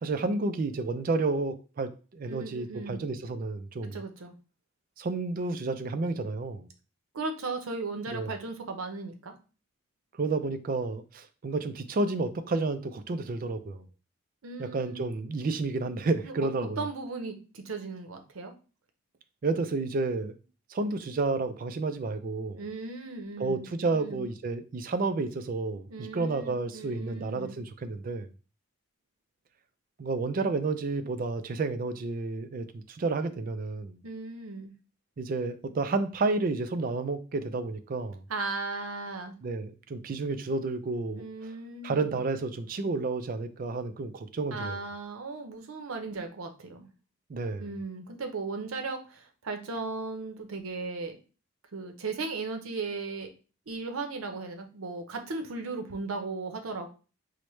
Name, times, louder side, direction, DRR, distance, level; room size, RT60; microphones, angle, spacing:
voice 1, 0.0-4.0 5.0-6.7 8.1-8.3 10.2-13.9 14.6-16.8 19.4-20.4 20.7-22.6 23.4-28.3 30.0-34.0 35.2-38.2 39.4-41.2 41.8-44.8 47.3-47.6, right 3 dB, 40° right, 0.3 m, -31 dB
voice 2, 2.3-3.0 3.9-4.3 7.1-9.3 14.4-15.0 16.2-16.3 16.6-18.5 22.6-24.3 25.9-27.6 34.0-34.7 38.3-39.3 41.2-42.2 44.5-46.9 47.6-51.2 51.7-53.3 53.7-56.9, right 3 dB, 80° right, 0.6 m, -37 dB
4.6 x 2.1 x 3.1 m
head